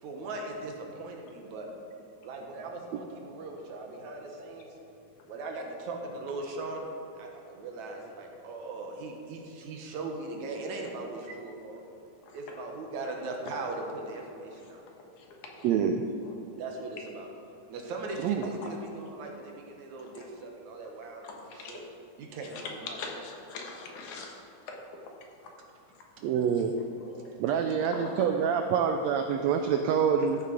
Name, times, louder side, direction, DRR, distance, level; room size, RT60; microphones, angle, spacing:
voice 1, 0.0-1.7 2.2-4.7 5.3-11.8 12.3-14.8 16.6-17.3 17.7-21.2 21.5-21.8 22.2-23.2 27.3-27.4, right 2 dB, 70° right, 1 dB, 2.4 m, -39 dB
voice 2, 15.6-16.0 18.2-18.5 26.2-26.7 27.4-30.4, right 7 dB, 85° right, 5 dB, 1.5 m, -26 dB
voice 3, 21.2-21.8 22.5-24.4 24.7-24.8 27.0-27.3 27.9-28.3, left 4 dB, 70° left, 1 dB, 2.6 m, -41 dB
14.0 x 6.8 x 5.2 m, 2.7 s
omnidirectional pair, 3.6 m